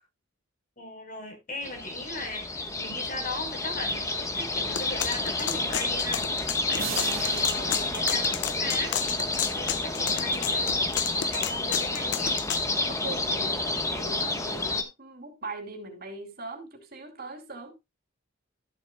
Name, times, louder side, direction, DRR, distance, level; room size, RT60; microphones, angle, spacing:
voice 1, 0.8-9.0 9.5-12.3, left 2 dB, 45° left, 4.3 m, -39 dB
sound 1, 1.6-14.8, left 2 dB, 15° left, 1.1 m, -29 dB
sound 2, 4.8-12.6, left 10 dB, 60° left, 0.6 m, -32 dB
sound 3, 6.8-9.3, right 8 dB, 85° right, 1.3 m, -39 dB
voice 2, 13.0-13.6 13.9-17.7, right 2 dB, 50° right, 2.9 m, -40 dB
14.0 x 7.9 x 2.2 m
head